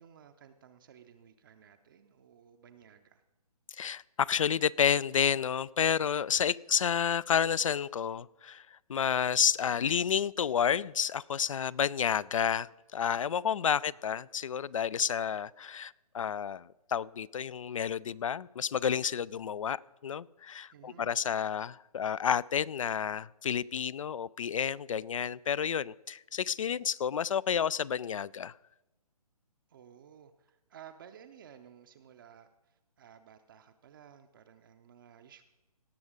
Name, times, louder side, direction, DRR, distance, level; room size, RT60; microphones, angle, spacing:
voice 1, 0.0-3.2 13.5-14.0 20.7-21.1 29.7-35.4, right 8 dB, 35° right, 6 dB, 0.6 m, -55 dB
voice 2, 3.7-28.5, left 8 dB, 55° left, 23 dB, 0.4 m, -30 dB
17.5 x 7.0 x 5.0 m, 1.0 s
figure-of-eight pair, 140°, 20 cm